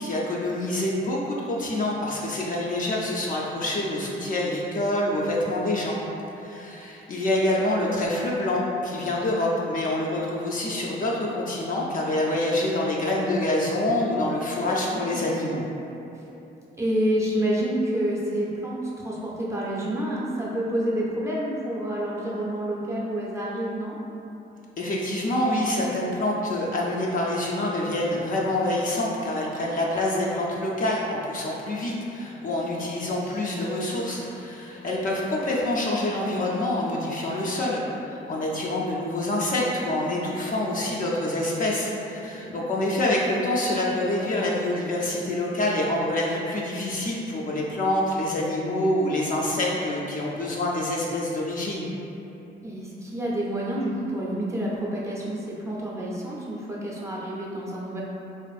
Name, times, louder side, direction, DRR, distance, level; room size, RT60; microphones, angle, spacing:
voice 1, 0.0-6.0 6.4-15.6 24.8-51.9, left 1 dB, 45° left, -3 dB, 0.4 m, -26 dB
voice 2, 14.7-15.3 16.2-16.3 16.8-24.0 32.9-33.4 42.2-42.6 52.6-58.0, right 1 dB, 15° right, -6 dB, 0.4 m, -29 dB
2.5 x 2.4 x 2.3 m, 2.9 s
cardioid pair, 90°, 20 cm